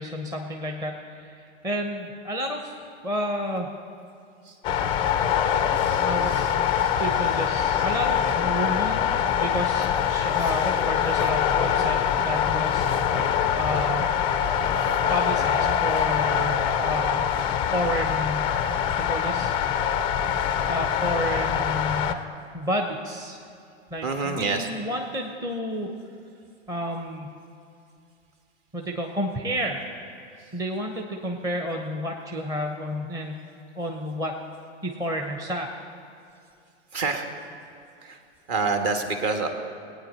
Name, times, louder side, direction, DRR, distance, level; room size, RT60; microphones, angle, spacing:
voice 1, 0.0-2.7 3.0-3.7 6.1-6.4 7.0-12.0 12.2-14.1 15.1-17.4 17.7-18.6 18.9-19.6 20.7-22.2 22.5-23.4 23.9-25.9 26.7-27.3 28.7-29.9 30.2-33.4 33.7-34.4 34.8-35.7, equal, 10° right, 1 dB, 0.7 m, -31 dB
sound 1, 4.6-22.1, left 8 dB, 15° left, 0.3 m, -24 dB
voice 2, 5.8-7.0 7.7-7.9 10.1-10.3 12.9-13.3 24.0-24.7 30.4-30.5 36.9-37.3 38.0-38.2 38.5-39.5, right 4 dB, 40° right, 4 dB, 1.5 m, -29 dB
19.0 x 9.1 x 4.3 m, 2.5 s
hypercardioid pair, 105°, 37 cm